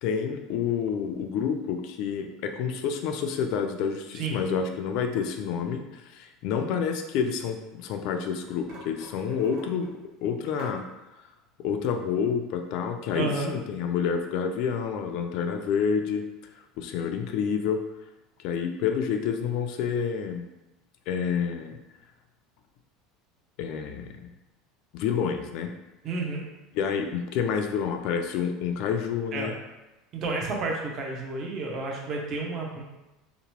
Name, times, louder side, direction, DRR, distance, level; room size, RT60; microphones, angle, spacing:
voice 1, 0.0-9.9 10.2-10.8 11.6-16.2 16.8-17.8 18.4-20.5 21.1-21.8 23.6-24.3 24.9-25.7 26.7-29.5, left 7 dB, 60° left, 5 dB, 0.3 m, -28 dB
sound 1, 7.1-8.0 8.3-10.8, right 1 dB, 60° right, 1.1 m, -47 dB
voice 2, 13.1-13.5 26.0-26.4 29.3-29.6 30.1-32.8, right 3 dB, 40° right, 0 dB, 0.5 m, -31 dB
2.8 x 2.1 x 2.9 m, 1.0 s
supercardioid pair, 145°, 0 cm